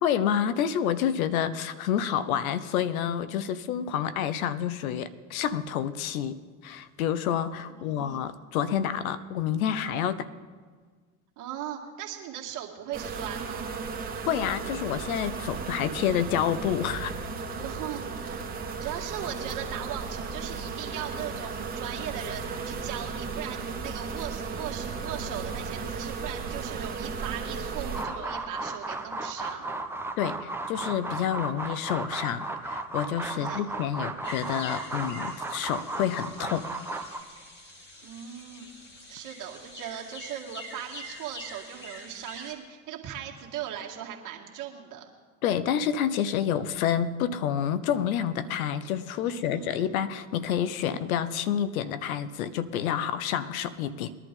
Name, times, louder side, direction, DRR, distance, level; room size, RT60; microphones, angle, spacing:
voice 1, 0.0-10.3 14.3-17.3 30.2-36.6 45.4-54.2, left 9 dB, 75° left, 14 dB, 0.9 m, -28 dB
voice 2, 7.7-8.3 11.4-13.7 17.5-29.7 33.3-33.6 38.0-38.7 39.1-45.0 49.2-49.9, right 10 dB, 45° right, 0 dB, 2.2 m, -39 dB
sound 1, 12.9-28.0, right 5 dB, 20° right, 1.9 m, -35 dB
sound 2, 27.9-37.2, right 2 dB, 5° right, 1.0 m, -35 dB
sound 3, 34.2-42.5, left 1 dB, 25° left, 2.6 m, -46 dB
20.5 x 11.0 x 3.8 m, 1.5 s
hypercardioid pair, 90°, 43 cm